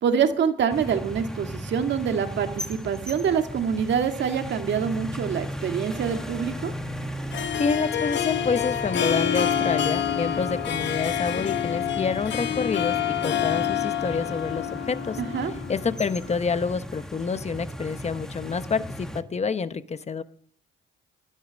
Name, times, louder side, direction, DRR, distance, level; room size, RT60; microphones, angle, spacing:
voice 1, 0.0-6.7 15.2-15.5, right 7 dB, 65° right, 6 dB, 1.9 m, -25 dB
sound 1, 0.7-19.2, equal, 5° left, 1.5 m, -36 dB
Harp, 5.9-16.4, left 10 dB, 65° left, 1.1 m, -28 dB
voice 2, 7.6-15.2 15.7-20.2, left 5 dB, 35° left, 12 dB, 1.0 m, -28 dB
17.5 x 11.5 x 6.4 m, 0.62 s
cardioid pair, 90°, 20 cm